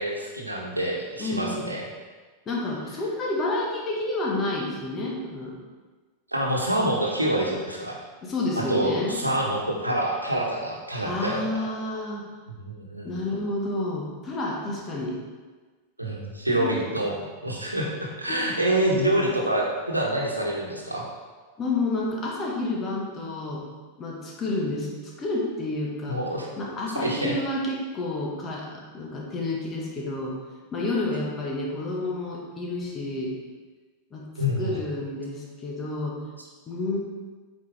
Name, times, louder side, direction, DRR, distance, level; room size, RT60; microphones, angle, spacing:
voice 1, 0.0-1.8 6.3-8.0 8.7-11.5 12.6-13.1 16.0-17.1 17.4-21.0 26.1-26.5 26.9-27.3 34.4-34.8, right 1 dB, 85° right, -2 dB, 1.2 m, -26 dB
voice 2, 1.2-1.7 2.4-5.6 8.2-9.2 11.0-12.2 13.0-15.2 16.6-16.7 17.1-17.3 18.3-18.5 21.6-23.6 24.0-26.2 26.6-30.3 30.7-33.3 34.1-36.2 36.7-37.0, left 2 dB, 25° left, -2 dB, 1.5 m, -30 dB
8.1 x 4.6 x 3.5 m, 1.4 s
figure-of-eight pair, 90°, 0 cm